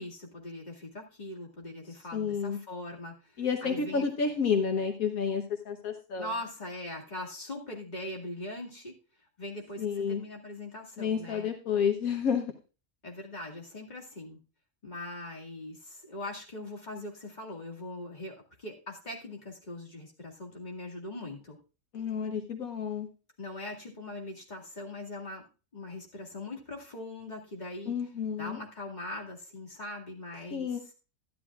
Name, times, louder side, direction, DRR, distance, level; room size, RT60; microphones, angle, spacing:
voice 1, 0.0-4.0 6.2-8.9 9.4-11.5 13.0-14.4 14.8-21.6 23.4-25.5 25.7-27.9 28.4-30.7, left 1 dB, 30° left, -2 dB, 2.3 m, -41 dB
voice 2, 2.1-2.6 3.4-6.3 9.8-10.2 11.0-12.5 21.9-23.1 27.9-28.6 30.5-30.9, left 6 dB, 75° left, 5 dB, 1.4 m, -30 dB
13.0 x 11.0 x 2.4 m, 0.33 s
omnidirectional pair, 1.5 m